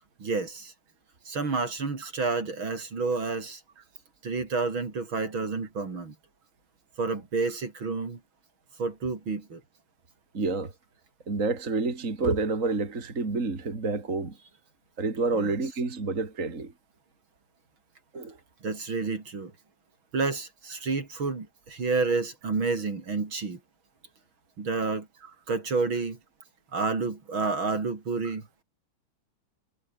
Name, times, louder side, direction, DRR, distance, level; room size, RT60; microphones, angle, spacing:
voice 1, 0.2-0.7 1.3-3.6 4.2-6.1 7.0-8.2 8.8-9.6 15.4-15.5 18.6-19.5 20.1-23.6 24.6-25.1 25.5-26.2 26.7-28.5, right 4 dB, 40° right, 4.1 m, -29 dB
voice 2, 10.3-10.7 11.3-14.4 15.0-16.7 18.1-18.4 28.2-28.3, right 3 dB, 25° right, 3.1 m, -29 dB
omnidirectional pair, 3.3 m